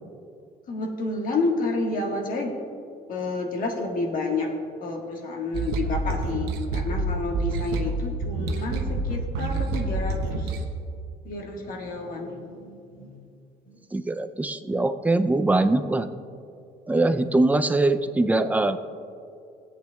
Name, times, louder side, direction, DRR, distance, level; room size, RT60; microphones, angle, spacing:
voice 1, 0.7-2.5 3.1-4.5 4.8-10.6 11.2-13.2 13.7-13.8, left 3 dB, 55° left, 1 dB, 1.5 m, -30 dB
sound 1, 5.5-10.7, right 2 dB, 90° right, 0.8 m, -28 dB
voice 2, 13.9-16.1 16.9-18.8, right 2 dB, 10° right, 9 dB, 0.4 m, -22 dB
16.0 x 8.2 x 2.3 m, 2.5 s
cardioid pair, 110°, 17 cm